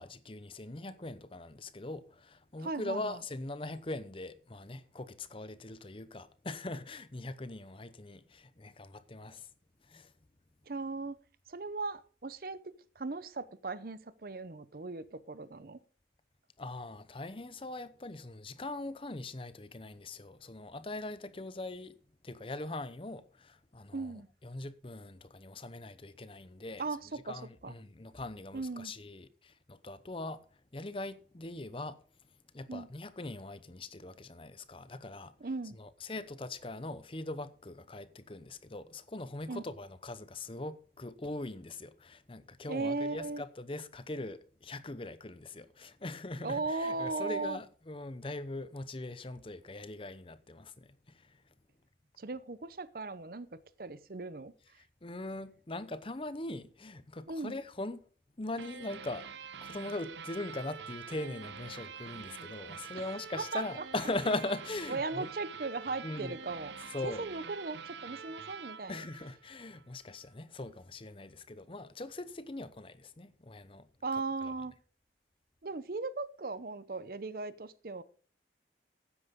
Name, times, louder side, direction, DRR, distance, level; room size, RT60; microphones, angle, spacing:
voice 1, 0.0-9.5 9.9-10.1 16.6-22.0 22.2-24.1 24.4-26.8 27.3-30.4 30.7-32.0 32.5-35.3 35.7-51.4 55.0-58.0 58.4-59.3 59.6-65.3 66.0-66.4 66.9-67.2 68.9-73.9, left 2 dB, 30° left, 0.8 m, -41 dB
voice 2, 2.6-3.2 10.7-11.2 11.5-12.6 13.0-15.8 23.9-24.3 26.8-27.7 28.5-28.9 32.7-32.9 35.4-35.8 39.5-39.6 42.7-43.4 46.4-47.6 52.2-54.5 57.3-57.6 63.0-63.6 64.9-66.7 67.0-69.1 74.0-74.7 75.6-78.0, right 3 dB, 55° right, 0.7 m, -38 dB
sound 1, 58.6-69.8, right 6 dB, 90° right, 0.8 m, -46 dB
13.5 x 9.9 x 3.7 m
head